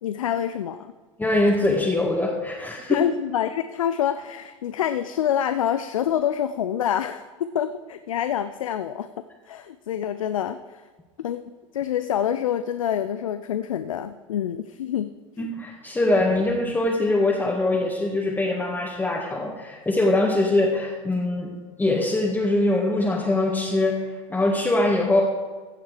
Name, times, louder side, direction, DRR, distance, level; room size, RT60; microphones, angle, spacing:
voice 1, 0.0-0.9 2.9-9.1 9.5-10.8 11.2-11.4 11.7-15.1 15.4-15.5, left 9 dB, 85° left, 11 dB, 0.5 m, -26 dB
voice 2, 1.2-3.0 15.4-21.5 21.8-25.2, left 2 dB, 10° left, -3 dB, 1.8 m, -23 dB
15.5 x 7.3 x 4.9 m, 1.4 s
hypercardioid pair, 90°, 17 cm